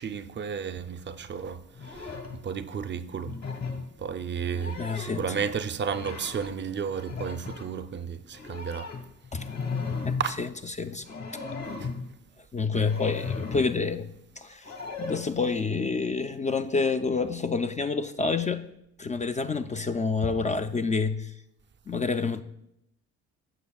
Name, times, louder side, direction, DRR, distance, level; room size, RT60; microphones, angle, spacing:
voice 1, 0.0-3.4 4.0-8.9 10.2-10.3 11.8-11.9, right 6 dB, 40° right, 0.5 m, -33 dB
sound 1, 1.7-2.4 3.2-3.9 4.4-5.3 5.9-6.5 6.9-7.7 8.3-10.3 11.0-12.1 12.8-13.8 14.6-15.2, left 4 dB, 60° left, 1.8 m, -36 dB
voice 2, 4.8-5.2 9.3-9.5 10.0-10.1 10.8-11.0 12.5-18.7 19.0-21.3 21.9-22.4, left 4 dB, 25° left, 0.4 m, -28 dB
15.5 x 5.7 x 2.3 m
cardioid pair, 90°, 30 cm